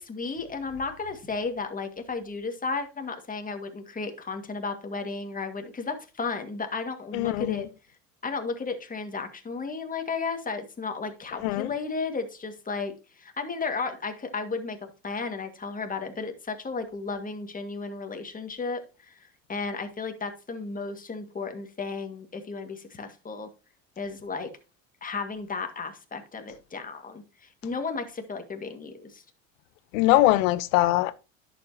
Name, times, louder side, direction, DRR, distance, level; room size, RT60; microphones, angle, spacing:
voice 1, 0.0-7.7 8.2-23.5 24.0-24.5 25.0-29.2, left 4 dB, 20° left, 2.0 m, -34 dB
voice 2, 7.1-7.6 11.4-11.7 29.9-31.2, left 16 dB, 75° left, 0.8 m, -22 dB
11.0 x 7.5 x 2.8 m
hypercardioid pair, 85°, 39 cm